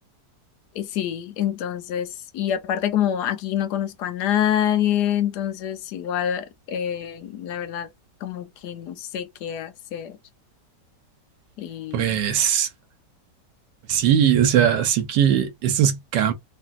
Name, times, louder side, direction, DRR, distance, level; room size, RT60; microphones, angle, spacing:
voice 1, 0.8-7.9 8.2-10.2 11.6-12.2, left 10 dB, 75° left, 1.2 m, -26 dB
voice 2, 11.9-12.7 13.9-16.3, right 9 dB, 85° right, 1.3 m, -20 dB
3.1 x 2.5 x 2.4 m
omnidirectional pair, 1.9 m